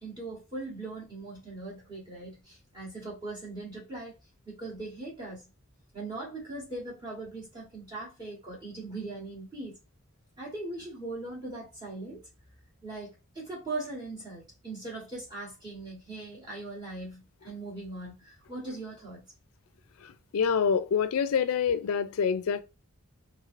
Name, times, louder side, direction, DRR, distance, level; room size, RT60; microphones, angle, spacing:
voice 1, 0.0-4.1 4.5-5.5 5.9-9.8 10.4-12.2 12.8-19.2, right 2 dB, 20° right, 1.2 m, -40 dB
voice 2, 20.3-22.6, left 6 dB, 75° left, 0.4 m, -26 dB
3.2 x 2.7 x 2.4 m
head